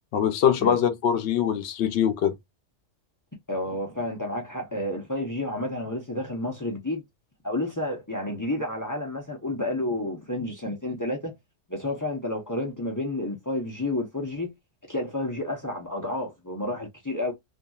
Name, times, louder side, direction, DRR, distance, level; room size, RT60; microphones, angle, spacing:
voice 1, 0.1-2.3, left 9 dB, 65° left, 0.9 m, -23 dB
voice 2, 3.5-7.0 7.4-11.3 11.7-14.5 14.9-17.3, left 1 dB, 25° left, 0.4 m, -30 dB
2.9 x 2.5 x 2.2 m
omnidirectional pair, 1.3 m